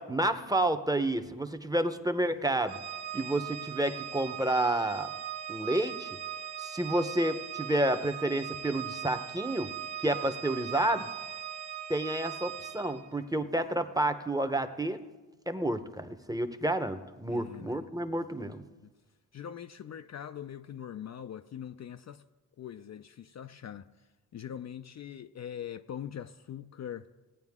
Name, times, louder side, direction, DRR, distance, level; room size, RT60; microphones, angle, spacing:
voice 1, 0.0-2.8 3.1-5.1 5.5-6.2 6.6-9.7 10.0-11.1 11.9-15.0 15.5-18.6, right 1 dB, 10° right, 0.9 m, -30 dB
Organ, 2.7-13.1, right 10 dB, 85° right, 0.8 m, -40 dB
voice 2, 17.3-17.9 18.4-18.5 18.8-18.9 19.3-22.2 22.6-23.9 24.3-27.1, left 9 dB, 45° left, 0.5 m, -42 dB
17.5 x 8.8 x 3.6 m
supercardioid pair, 60°, 38 cm